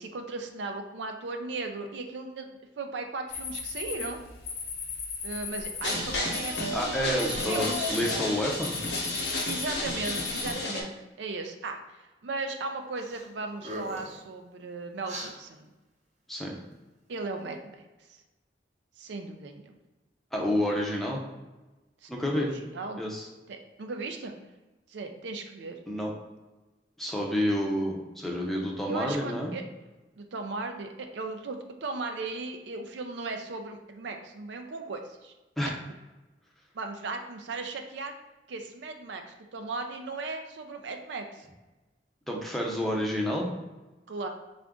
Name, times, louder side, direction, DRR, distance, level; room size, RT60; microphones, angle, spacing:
voice 1, 0.0-4.2 5.2-8.0 9.4-15.7 17.1-17.8 19.0-19.8 22.0-22.5 22.7-23.0 23.5-24.3 24.9-25.8 28.8-29.6 30.2-35.3 36.7-38.1 38.5-41.5 44.1-44.3, right 3 dB, 80° right, 5 dB, 0.4 m, -37 dB
sound 1, 3.3-10.5, left 5 dB, 55° left, 0.5 m, -38 dB
sound 2, 5.8-10.8, left 2 dB, 85° left, 0.9 m, -32 dB
voice 2, 6.7-8.8 16.3-16.6 20.3-21.2 22.1-22.5 23.0-23.3 25.9-26.1 27.0-29.5 35.6-35.8 42.3-43.5, equal, ahead, -2 dB, 0.5 m, -29 dB
sound 3, 13.0-13.2 13.5-14.2 15.0-15.3, equal, 40° right, 0.7 m, -39 dB
3.7 x 2.5 x 3.4 m, 1.1 s
head